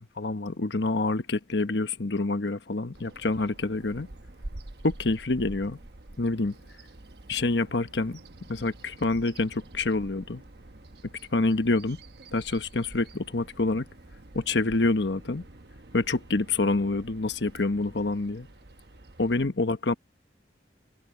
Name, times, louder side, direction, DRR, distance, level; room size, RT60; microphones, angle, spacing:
voice 1, 0.2-4.1 4.8-5.8 6.2-6.6 7.3-8.2 8.5-10.4 11.3-12.0 12.3-13.9 14.3-15.4 15.9-18.5 19.2-19.9, left 2 dB, 75° left, 1.1 m, -27 dB
Bird vocalization bird call bird song, 2.9-19.3, right 1 dB, 60° right, 1.1 m, -47 dB
head